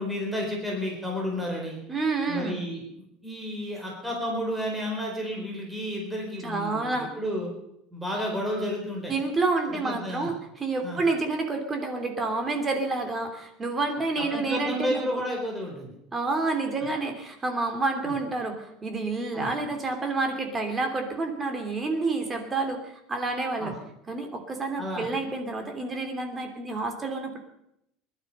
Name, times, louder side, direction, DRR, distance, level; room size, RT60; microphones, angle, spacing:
voice 1, 0.0-1.8 2.3-7.5 7.9-9.1 9.8-10.3 10.8-11.0 14.1-15.9 16.8-16.9 18.0-18.1 19.3-19.5 23.6-23.7 24.8-25.1, equal, 5° right, -1 dB, 4.1 m, -31 dB
voice 2, 1.9-2.6 6.4-7.1 9.1-15.2 16.1-23.8 24.1-27.4, right 3 dB, 20° right, 5 dB, 2.8 m, -29 dB
20.5 x 12.0 x 5.5 m, 0.78 s
cardioid pair, 140°, 0 cm